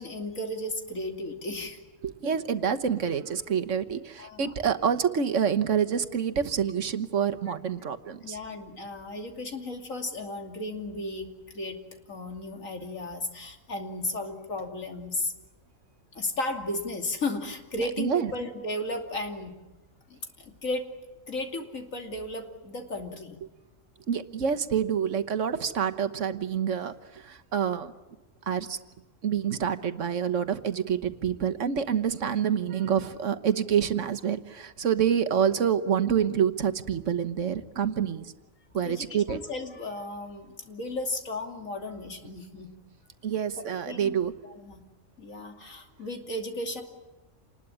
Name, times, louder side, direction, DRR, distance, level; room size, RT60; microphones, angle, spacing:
voice 1, 0.0-1.8 4.2-4.5 8.2-11.8 12.1-15.3 16.1-19.5 20.1-20.9 21.3-23.4 38.8-42.7 43.6-44.1 44.4-44.8 45.2-46.8, left 2 dB, 80° left, 4 dB, 3.2 m, -34 dB
voice 2, 2.0-8.4 18.0-18.3 24.1-27.9 28.5-28.8 29.2-38.3 38.7-39.4 43.2-44.3, right 8 dB, 70° right, 8 dB, 1.5 m, -27 dB
28.0 x 20.5 x 10.0 m, 1.1 s
omnidirectional pair, 1.4 m